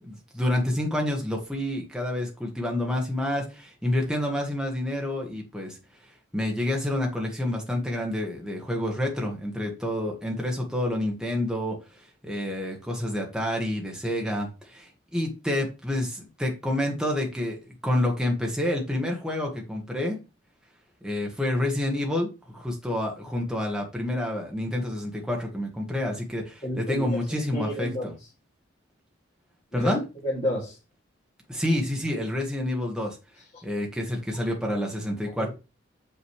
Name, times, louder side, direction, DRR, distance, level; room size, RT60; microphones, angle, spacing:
voice 1, 0.0-5.8 6.3-11.8 12.2-20.2 21.0-28.1 29.7-30.0 31.5-33.2 33.6-35.5, left 1 dB, 5° right, 0 dB, 1.4 m, -28 dB
voice 2, 26.6-28.1 29.7-29.9 30.2-30.8 35.4-35.5, equal, 30° left, -6 dB, 2.3 m, -30 dB
6.4 x 5.8 x 3.2 m, 0.30 s
head